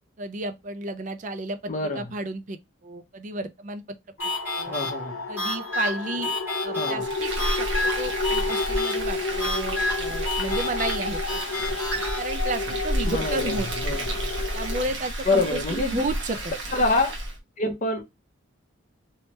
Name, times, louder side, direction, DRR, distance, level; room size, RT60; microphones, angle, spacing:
voice 1, 0.2-3.8 4.6-4.7 5.3-6.3 6.6-7.7 8.0-11.4 12.2-14.0 14.5-16.4, right 2 dB, 40° right, 0.4 m, -32 dB
voice 2, 1.7-2.1 4.7-5.2 6.7-7.1 13.0-14.1 15.3-16.0 16.7-17.2 17.6-18.0, left 2 dB, 40° left, 0.8 m, -26 dB
sound 1, 4.2-14.8, left 3 dB, 90° left, 0.7 m, -31 dB
sound 2, 4.2-12.2, left 1 dB, 10° right, 1.5 m, -31 dB
Frying (food), 7.0-17.4, right 1 dB, 65° right, 1.2 m, -31 dB
3.2 x 3.1 x 3.0 m
head